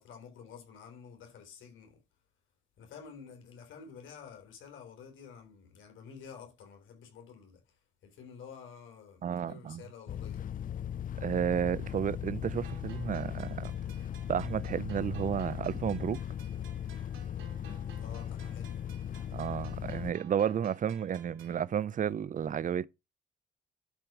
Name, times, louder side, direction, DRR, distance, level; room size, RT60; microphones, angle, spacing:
voice 1, 0.0-2.0 2.8-7.7 8.0-10.5 18.0-18.8, left 6 dB, 75° left, 3.9 m, -50 dB
voice 2, 9.2-9.8 11.2-13.7 14.3-16.2 19.3-22.9, right 8 dB, 40° right, 0.5 m, -32 dB
sound 1, 10.1-20.1, left 10 dB, 45° left, 0.5 m, -38 dB
sound 2, 12.6-21.6, right 9 dB, 80° right, 2.7 m, -56 dB
11.5 x 4.5 x 6.0 m
cardioid pair, 90°, 20 cm